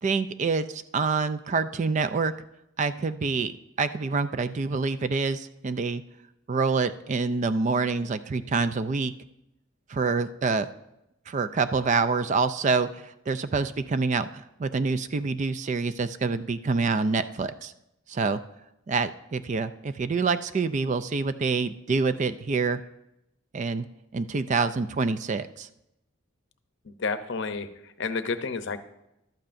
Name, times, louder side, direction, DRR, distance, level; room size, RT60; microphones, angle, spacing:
voice 1, 0.0-2.3 2.8-6.0 6.5-9.1 9.9-10.7 11.3-17.7 18.1-18.4 18.9-22.8 23.5-23.9 24.1-25.7, right 4 dB, 35° right, 12 dB, 0.3 m, -26 dB
voice 2, 26.8-28.8, left 4 dB, 55° left, 10 dB, 0.7 m, -31 dB
14.5 x 12.0 x 2.6 m, 0.88 s
head